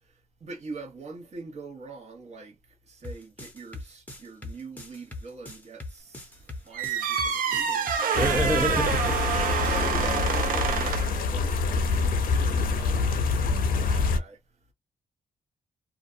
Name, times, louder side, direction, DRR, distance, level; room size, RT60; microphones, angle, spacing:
voice 1, 0.0-8.2 9.3-14.7, right 3 dB, 50° right, 1.0 m, -43 dB
sound 1, 3.0-8.4, left 2 dB, 10° left, 0.8 m, -41 dB
sound 2, 6.7-11.2, right 7 dB, 75° right, 0.5 m, -27 dB
sound 3, 8.1-14.2, left 4 dB, 75° left, 0.5 m, -26 dB
voice 2, 8.2-9.1, right 1 dB, 15° right, 0.5 m, -26 dB
2.5 x 2.2 x 2.5 m
cardioid pair, 110°, 15 cm